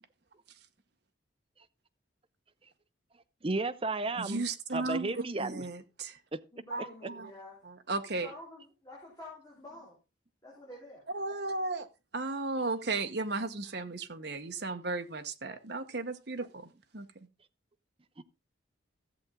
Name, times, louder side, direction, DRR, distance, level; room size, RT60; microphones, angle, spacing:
voice 1, 3.4-4.4 4.7-5.7 6.3-6.4 18.2-18.3, right 3 dB, 30° right, 0.6 m, -33 dB
voice 2, 4.2-6.2 6.7-7.3 7.6-8.3 11.1-11.9 12.1-17.1, right 3 dB, 55° right, 1.0 m, -35 dB
voice 3, 6.5-7.6 8.2-10.0 10.4-11.0, left 1 dB, 15° left, 3.6 m, -49 dB
14.0 x 7.6 x 3.7 m
head